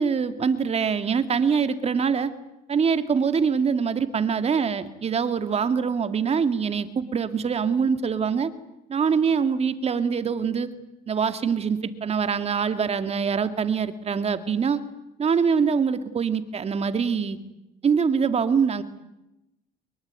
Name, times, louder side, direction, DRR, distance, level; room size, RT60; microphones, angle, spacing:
voice 1, 0.0-2.3 2.7-8.5 8.9-10.7 11.1-14.8 15.2-17.4 17.8-18.8, right 6 dB, 40° right, 10 dB, 2.2 m, -24 dB
24.0 x 22.5 x 9.6 m, 0.92 s
cardioid pair, 110°, 17 cm